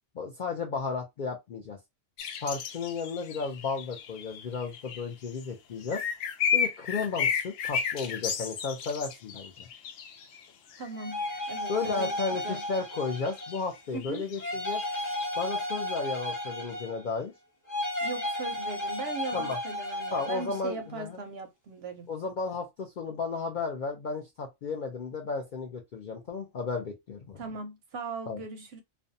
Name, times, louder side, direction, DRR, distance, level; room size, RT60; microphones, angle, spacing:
voice 1, 0.1-1.8 2.4-6.0 6.5-9.7 11.7-14.8 15.4-17.3 19.3-19.6 20.1-21.2 22.1-27.4 28.3-28.4, left 4 dB, 65° left, 0.5 m, -34 dB
sound 1, 2.2-5.4 5.8-10.4 10.7-15.2, left 7 dB, 85° left, 1.0 m, -33 dB
voice 2, 10.8-12.1 12.4-12.6 13.9-14.3 18.0-22.1 27.4-28.8, right 3 dB, 65° right, 0.7 m, -39 dB
sound 2, 10.9-13.8 14.4-17.2 17.7-20.6, left 1 dB, 15° left, 0.7 m, -34 dB
2.5 x 2.1 x 2.5 m
omnidirectional pair, 1.3 m